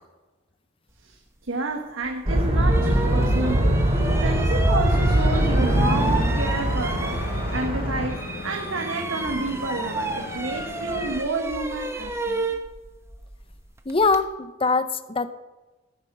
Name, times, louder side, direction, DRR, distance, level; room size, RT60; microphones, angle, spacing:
voice 1, 1.0-7.2 7.5-12.4, right 2 dB, 75° right, 3 dB, 1.3 m, -30 dB
sound 1, 2.0-2.1 2.7-7.8 8.1-14.2, right 2 dB, 15° right, 1.0 m, -32 dB
sound 2, 2.3-8.1, right 1 dB, 30° right, 3.3 m, -22 dB
sound 3, 4.9-11.2, left 2 dB, 45° left, 1.1 m, -36 dB
voice 2, 13.9-15.3, left 4 dB, 25° left, 12 dB, 0.6 m, -22 dB
14.0 x 9.4 x 6.6 m, 1.2 s
head